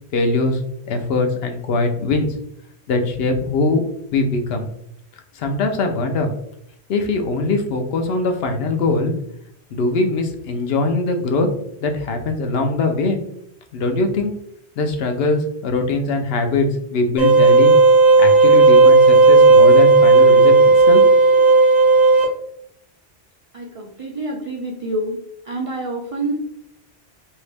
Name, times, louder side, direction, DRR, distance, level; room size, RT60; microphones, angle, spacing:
voice 1, 0.1-0.6 0.9-2.3 2.9-3.8 4.1-4.7 5.4-6.3 6.9-9.1 9.7-11.5 11.8-13.2 13.7-14.3 14.8-17.8 18.2-20.5 20.9-21.0, left 2 dB, 70° left, 5 dB, 0.8 m, -21 dB
sound 1, 17.2-22.2, right 3 dB, 40° left, 1.0 m, -11 dB
voice 2, 23.5-25.2 25.5-26.3, right 2 dB, 55° right, -1 dB, 0.3 m, -27 dB
3.0 x 2.7 x 3.3 m, 0.73 s
omnidirectional pair, 1.1 m